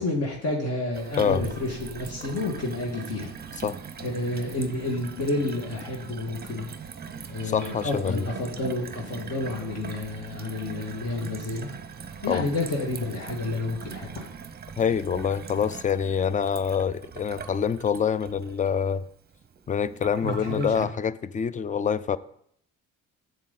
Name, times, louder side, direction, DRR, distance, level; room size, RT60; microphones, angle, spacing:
voice 1, 0.0-3.3 4.0-6.7 7.3-11.8 12.2-14.3 20.2-20.9, left 2 dB, 45° left, 1.9 m, -30 dB
Gurgling / Water tap faucet / Sink (filling or washing), 0.9-20.9, right 6 dB, 30° right, 0.8 m, -41 dB
voice 2, 7.4-8.3 12.3-12.4 14.8-19.0 19.7-22.2, left 7 dB, 25° left, 0.4 m, -26 dB
7.3 x 7.2 x 4.0 m
supercardioid pair, 65°, 33 cm